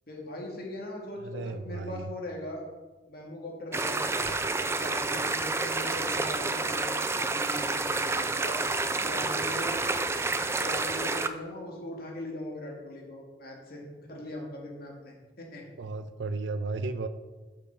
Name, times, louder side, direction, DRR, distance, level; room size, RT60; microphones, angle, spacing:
voice 1, 0.1-2.6 3.1-8.6 9.0-9.9 10.3-15.7, left 1 dB, 55° left, -1 dB, 2.1 m, -40 dB
voice 2, 1.2-2.1 15.8-17.1, right 3 dB, 75° right, 10 dB, 0.4 m, -34 dB
sound 1, 3.7-11.3, right 3 dB, 15° right, 0.4 m, -29 dB
6.8 x 5.9 x 6.0 m, 1.3 s
head